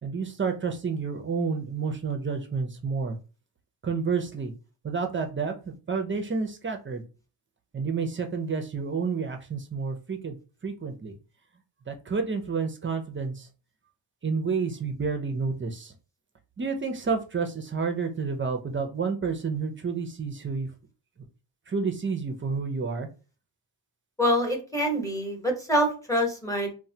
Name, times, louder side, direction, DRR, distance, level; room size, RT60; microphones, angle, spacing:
voice 1, 0.0-3.2 3.8-4.5 4.8-7.0 7.7-10.4 10.6-11.2 11.9-13.5 14.2-15.9 16.6-20.7 21.7-23.1, right 5 dB, 25° right, 5 dB, 0.5 m, -30 dB
voice 2, 24.2-26.7, equal, 5° left, 1 dB, 0.9 m, -25 dB
3.1 x 2.2 x 2.7 m, 0.35 s
cardioid pair, 85°, 47 cm